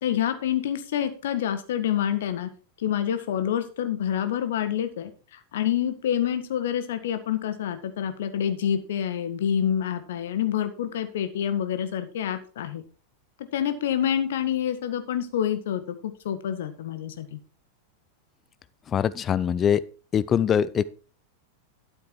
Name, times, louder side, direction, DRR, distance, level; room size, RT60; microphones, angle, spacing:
voice 1, 0.0-2.5 2.8-12.8 13.4-17.4, left 9 dB, 60° left, 10 dB, 1.6 m, -27 dB
voice 2, 18.9-19.8 20.1-20.8, left 8 dB, 25° left, 17 dB, 0.5 m, -22 dB
12.5 x 7.8 x 4.6 m, 0.38 s
figure-of-eight pair, 90°, 0 cm